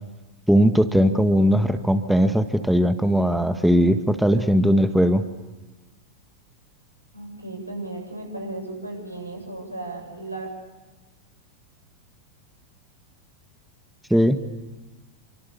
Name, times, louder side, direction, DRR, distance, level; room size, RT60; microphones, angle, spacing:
voice 1, 0.5-5.2 14.1-14.4, equal, ahead, 8 dB, 1.6 m, -19 dB
voice 2, 7.1-10.5, right 2 dB, 85° right, 1 dB, 7.9 m, -35 dB
28.5 x 25.5 x 7.1 m, 1.1 s
figure-of-eight pair, 90°, 0 cm